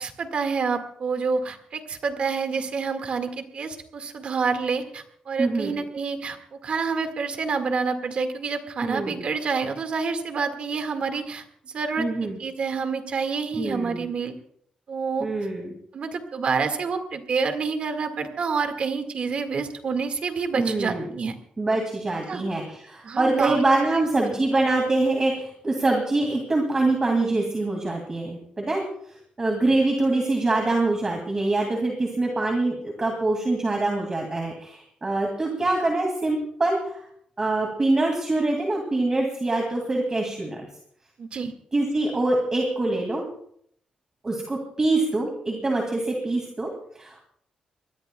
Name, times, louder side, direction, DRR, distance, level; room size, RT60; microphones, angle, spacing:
voice 1, 0.0-14.4 14.9-15.3 15.9-21.4 22.3-22.4 23.0-23.6 23.9-24.0 41.2-41.5, right 5 dB, 50° right, 7 dB, 1.9 m, -28 dB
voice 2, 5.4-5.8 8.8-9.2 12.0-12.4 13.6-14.0 15.2-15.7 20.6-21.0 21.6-28.8 29.4-37.0 37.4-40.6 41.7-43.2 44.2-47.2, right 2 dB, 25° right, 1 dB, 2.4 m, -24 dB
24.5 x 20.5 x 2.3 m, 0.65 s
wide cardioid pair, 150°, 3 cm